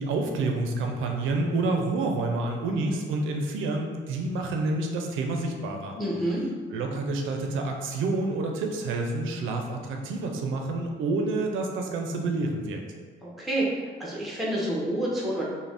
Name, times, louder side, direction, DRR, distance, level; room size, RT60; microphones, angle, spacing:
voice 1, 0.0-6.0 6.7-12.8, right 2 dB, 80° right, 2 dB, 0.4 m, -28 dB
voice 2, 6.0-6.4 13.2-13.7 14.0-15.5, right 1 dB, ahead, -5 dB, 0.6 m, -28 dB
2.5 x 2.1 x 3.2 m, 1.5 s
cardioid pair, 90°, 20 cm